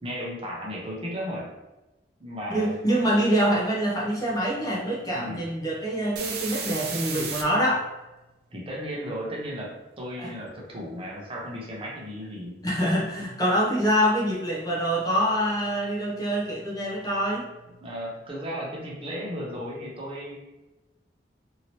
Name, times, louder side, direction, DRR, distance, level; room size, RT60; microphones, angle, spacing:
voice 1, 0.0-1.5 2.2-3.1 5.2-5.4 8.5-12.6 17.8-20.4, equal, 30° right, -3 dB, 0.7 m, -35 dB
voice 2, 2.5-7.9 10.2-10.3 12.6-17.5, equal, 20° left, -5 dB, 0.7 m, -25 dB
sound 1, 5.0-5.1 5.5-7.4 15.8-15.9 16.3-17.9, right 5 dB, 65° right, 0.6 m, -35 dB
2.8 x 2.8 x 2.9 m, 1.0 s
head